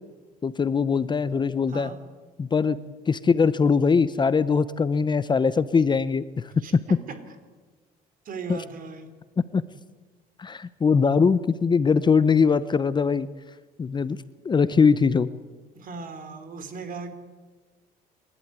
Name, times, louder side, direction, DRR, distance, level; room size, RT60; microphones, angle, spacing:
voice 1, 0.4-1.9 2.4-2.8 3.1-6.8 8.5-8.6 9.5-9.6 10.4-13.3 13.8-14.2 14.4-15.3, left 5 dB, 25° left, 15 dB, 0.8 m, -21 dB
voice 2, 6.6-7.3 8.2-9.1 15.7-17.1, right 4 dB, 55° right, 9 dB, 3.3 m, -38 dB
28.0 x 12.0 x 9.6 m, 1.3 s
cardioid pair, 110°, 17 cm